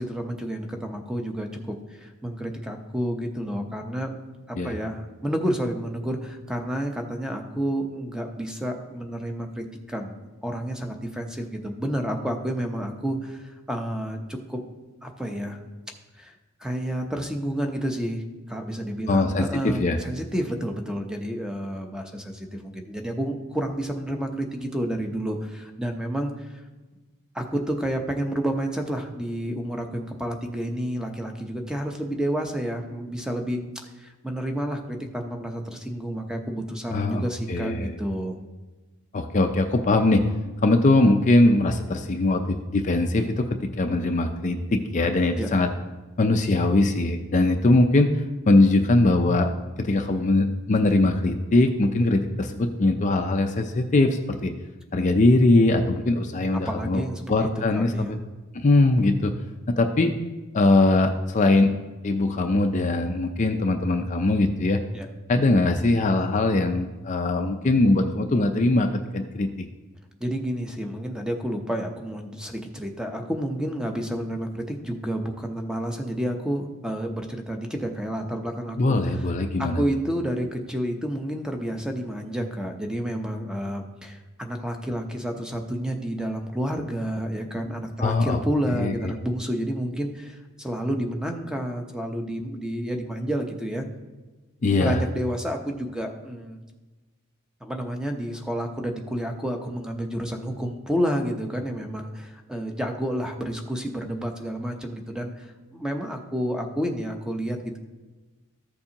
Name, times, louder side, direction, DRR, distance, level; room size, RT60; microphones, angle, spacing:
voice 1, 0.0-4.2 4.5-14.6 15.0-15.6 16.2-16.3 16.6-26.5 27.3-33.6 34.0-38.4 45.4-45.5 56.7-58.1 64.9-65.1 70.2-79.2 79.6-93.8 94.8-96.6 97.6-107.8, equal, 5° right, 3 dB, 0.7 m, -30 dB
voice 2, 19.1-20.0 36.9-37.9 39.1-40.2 40.6-45.7 46.2-48.1 48.5-49.5 49.8-54.5 54.9-57.0 57.3-57.9 58.5-59.3 59.7-60.1 60.5-61.7 62.0-64.8 65.3-68.9 69.1-69.7 78.8-79.8 88.0-88.4 88.8-89.1 94.6-95.0, left 2 dB, 35° left, 5 dB, 0.4 m, -21 dB
14.0 x 6.8 x 2.9 m, 1.2 s
head